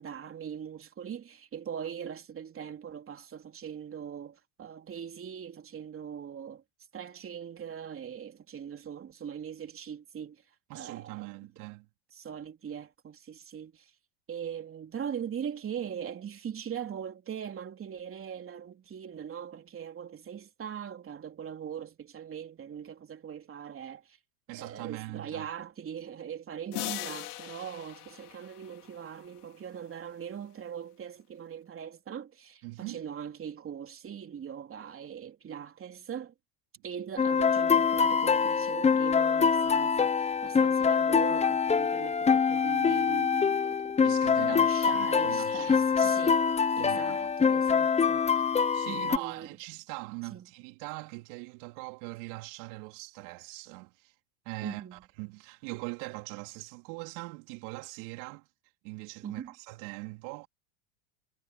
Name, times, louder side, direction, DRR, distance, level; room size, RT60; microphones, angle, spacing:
voice 1, 0.0-6.6 6.9-10.4 10.7-11.3 12.1-13.9 14.3-24.2 24.6-36.3 36.8-43.9 44.4-46.4 46.8-48.4 48.9-49.5 50.3-50.5 54.6-55.0 59.2-59.5, right 8 dB, 30° right, 3.2 m, -41 dB
voice 2, 10.7-11.9 24.5-25.5 32.6-33.0 44.0-46.3 46.8-47.3 48.7-54.1 54.5-58.5 58.8-60.5, right 26 dB, 65° right, 3.9 m, -42 dB
sound 1, 26.7-29.2, left 18 dB, 90° left, 2.4 m, -39 dB
sound 2, 37.2-49.2, left 6 dB, 15° left, 0.8 m, -25 dB
supercardioid pair, 115°, 45 cm